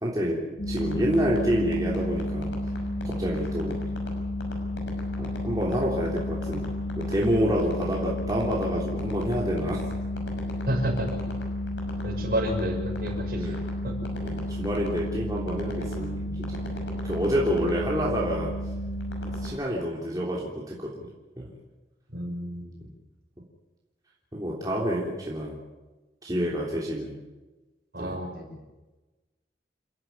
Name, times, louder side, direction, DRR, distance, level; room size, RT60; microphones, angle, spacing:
voice 1, 0.0-2.5 3.0-3.8 5.2-9.8 12.2-12.3 13.3-13.6 14.2-16.6 17.0-18.5 19.2-21.1 21.4-21.5 24.3-25.6 26.2-27.2 28.0-28.1, equal, 20° right, -4 dB, 3.3 m, -28 dB
sound 1, 0.6-19.5, left 1 dB, 80° left, 6.1 m, -32 dB
voice 2, 10.7-11.1 12.0-13.5 13.8-13.9 22.1-22.8 27.9-28.6, right 1 dB, 55° right, 0 dB, 6.1 m, -30 dB
29.5 x 11.5 x 9.6 m, 1.1 s
head